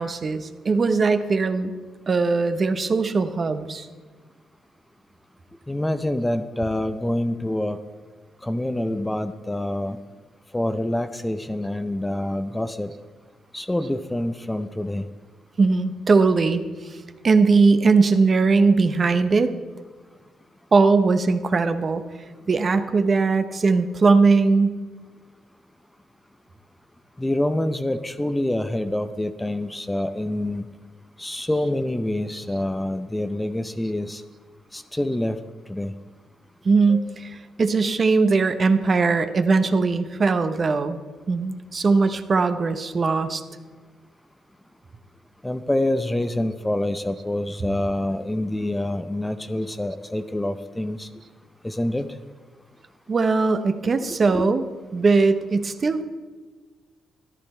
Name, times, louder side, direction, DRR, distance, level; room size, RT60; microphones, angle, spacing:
voice 1, 0.0-1.7 2.1-3.9 15.6-17.0 17.2-19.5 20.7-22.0 22.5-24.8 36.6-41.0 41.3-43.4 53.1-54.6 54.9-56.0, right 4 dB, 40° right, 9 dB, 0.9 m, -20 dB
voice 2, 5.7-7.8 8.4-10.0 10.5-12.9 13.5-15.1 27.2-30.7 31.2-34.2 34.7-35.4 35.7-35.9 36.9-37.1 45.4-51.1 51.6-52.1 54.3-54.5, left 1 dB, 10° left, 10 dB, 0.6 m, -26 dB
13.5 x 11.5 x 4.4 m, 1.5 s
cardioid pair, 90°, 0 cm